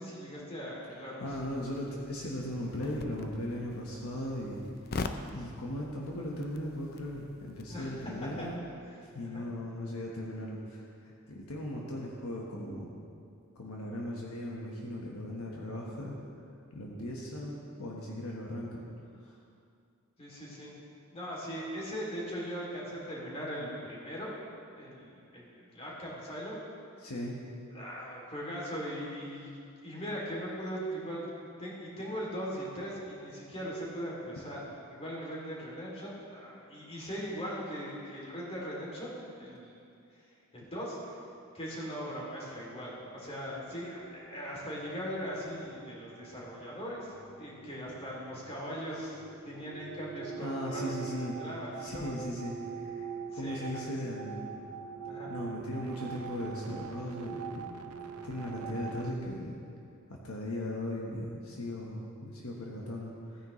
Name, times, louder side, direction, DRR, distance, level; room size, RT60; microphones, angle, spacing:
voice 1, 0.0-1.3 7.7-8.1 8.4-8.5 9.2-9.5 20.2-20.7 21.1-24.4 24.7-26.6 27.7-31.3 31.6-34.6 34.9-39.8 40.5-41.0 41.5-51.0 51.4-52.1 53.3-53.8 55.1-55.3, equal, 30° left, -5 dB, 2.8 m, -40 dB
voice 2, 1.2-4.6 5.3-8.5 9.0-12.9 13.5-16.1 16.7-18.8 19.2-19.3 27.0-27.3 50.4-51.4 51.8-53.1 53.3-54.5 55.2-57.7 58.2-59.6 60.2-63.4, left 1 dB, 75° left, -3 dB, 1.3 m, -38 dB
sound 1, 1.3-8.6, left 3 dB, 45° left, 0.5 m, -44 dB
sound 2, 43.0-59.1, right 7 dB, 85° right, 0.7 m, -45 dB
16.0 x 9.5 x 3.2 m, 2.5 s
head